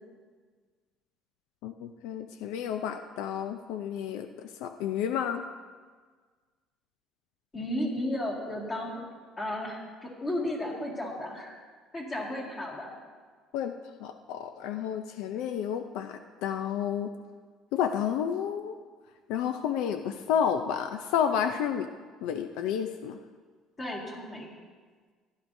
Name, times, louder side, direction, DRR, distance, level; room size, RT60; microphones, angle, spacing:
voice 1, 1.6-5.4 13.5-13.7 14.0-17.1 17.7-18.7 19.3-21.9 22.2-23.2, left 8 dB, 75° left, 7 dB, 0.5 m, -31 dB
voice 2, 7.5-9.0 9.4-11.6 11.9-12.9 23.8-24.5, left 1 dB, 20° left, -3 dB, 2.0 m, -34 dB
15.0 x 11.5 x 2.7 m, 1.5 s
cardioid pair, 180°, 0 cm